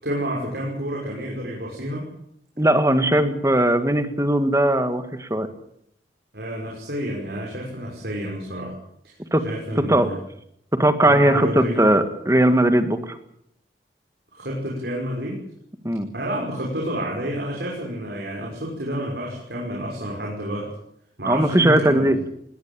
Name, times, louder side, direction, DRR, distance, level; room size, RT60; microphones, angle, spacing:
voice 1, 0.0-2.1 3.1-3.3 6.3-8.7 9.0-9.1 9.4-10.2 11.0-11.8 14.3-15.4 16.1-20.7 21.2-22.1, equal, 70° right, -2 dB, 6.1 m, -29 dB
voice 2, 2.6-5.5 9.3-9.4 9.8-10.1 10.7-13.2 15.8-16.1 21.3-22.2, right 1 dB, 15° right, 9 dB, 1.9 m, -19 dB
20.5 x 19.0 x 8.9 m, 0.72 s
head